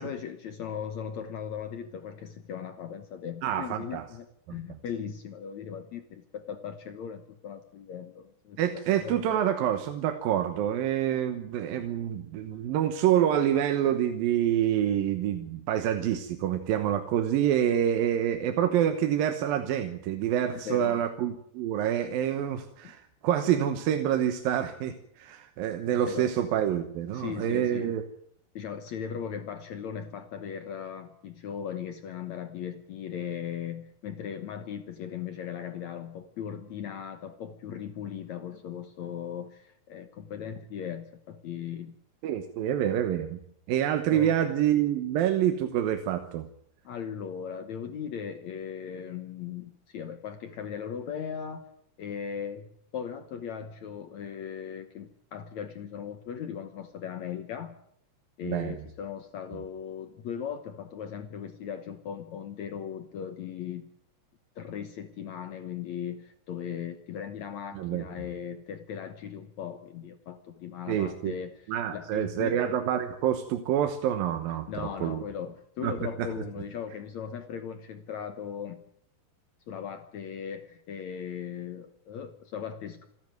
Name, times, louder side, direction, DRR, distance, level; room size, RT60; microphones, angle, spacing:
voice 1, 0.0-8.6 9.0-9.4 20.5-21.0 22.8-22.9 25.9-26.3 27.1-27.9 28.6-42.0 44.1-44.4 46.8-51.7 52.0-52.7 52.9-57.8 58.4-63.9 64.6-72.6 74.7-78.8 79.7-83.1, left 8 dB, 70° left, 8 dB, 1.8 m, -38 dB
voice 2, 3.4-4.1 8.6-28.0 42.2-43.4 43.7-46.5 58.4-58.8 67.7-68.0 70.9-71.3 71.7-75.2 75.8-75.9 76.2-76.3, right 10 dB, 70° right, 7 dB, 2.7 m, -27 dB
27.0 x 11.0 x 9.3 m, 0.71 s
omnidirectional pair, 4.7 m